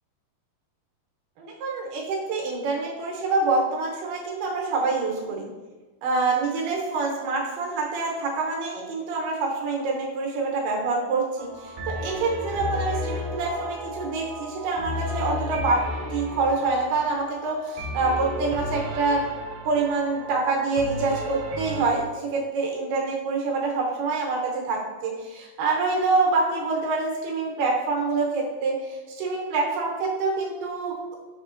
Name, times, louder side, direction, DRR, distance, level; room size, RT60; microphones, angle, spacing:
voice 1, 1.4-5.5 6.0-15.8 16.1-19.3 19.7-31.2, right 3 dB, 75° right, -1 dB, 2.3 m, -26 dB
sound 1, 11.4-21.9, left 1 dB, 90° right, 1.8 m, -34 dB
5.6 x 3.4 x 2.5 m, 1.3 s
omnidirectional pair, 4.3 m